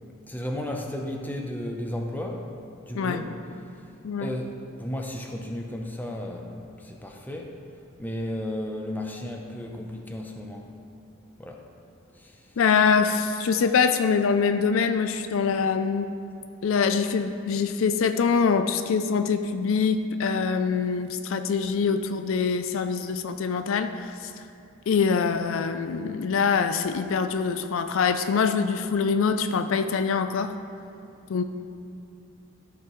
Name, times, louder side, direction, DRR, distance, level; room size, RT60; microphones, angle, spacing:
voice 1, 0.3-2.5 2.9-3.4 4.2-7.5 8.0-10.7 11.4-11.6 12.1-12.4, left 1 dB, 10° left, 1 dB, 0.6 m, -34 dB
voice 2, 2.9-3.3 4.0-4.3 12.6-16.1 16.6-24.3 24.9-30.6 31.3-31.4, left 5 dB, 65° left, 9 dB, 0.4 m, -24 dB
13.5 x 6.0 x 3.1 m, 2.6 s
head